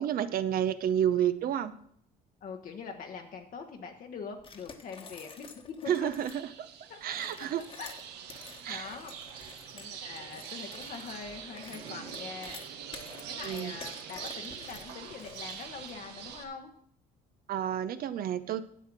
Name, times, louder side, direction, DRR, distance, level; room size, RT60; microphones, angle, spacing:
voice 1, 0.0-1.8 5.9-6.4 7.0-7.6 8.6-8.9 13.4-13.7 17.5-18.6, right 10 dB, 60° right, 12 dB, 0.8 m, -30 dB
voice 2, 2.4-6.1 6.9-7.1 7.8-8.0 8.7-9.1 9.7-12.6 13.3-16.7, left 5 dB, 55° left, 3 dB, 1.1 m, -43 dB
sound 1, 4.4-6.4 7.0-15.9, left 4 dB, 30° left, 1.3 m, -50 dB
sound 2, 6.3-16.4, right 8 dB, 85° right, 1.4 m, -44 dB
10.0 x 7.5 x 6.0 m, 0.63 s
cardioid pair, 110°, 17 cm